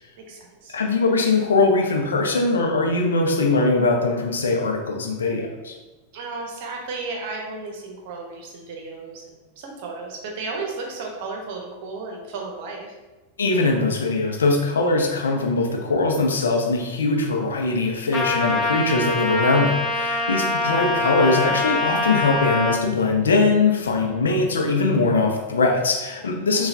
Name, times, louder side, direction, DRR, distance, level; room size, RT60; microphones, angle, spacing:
voice 1, 0.2-0.8 6.1-12.9 20.3-20.6 26.5-26.7, right 3 dB, 50° right, 0 dB, 0.9 m, -34 dB
voice 2, 0.7-5.7 13.4-26.7, left 3 dB, 70° left, 1 dB, 0.6 m, -21 dB
Trumpet, 18.1-22.8, left 2 dB, 20° left, 0.5 m, -24 dB
5.7 x 2.3 x 2.6 m, 1.1 s
figure-of-eight pair, 90°, 0 cm